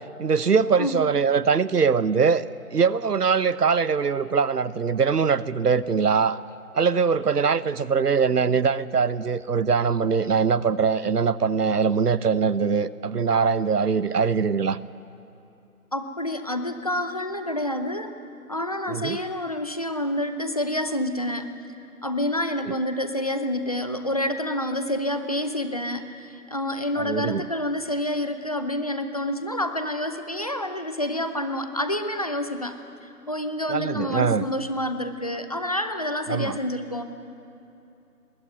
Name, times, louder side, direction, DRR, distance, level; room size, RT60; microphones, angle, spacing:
voice 1, 0.2-2.4 2.7-6.4 6.7-14.8 18.9-19.2 27.0-27.4 33.7-34.4 36.3-36.6, right 5 dB, 85° right, 17 dB, 0.9 m, -22 dB
voice 2, 15.9-18.2 18.5-21.5 22.0-37.0, left 1 dB, 25° left, 8 dB, 0.7 m, -28 dB
21.0 x 15.5 x 9.5 m, 2.8 s
figure-of-eight pair, 155°, 46 cm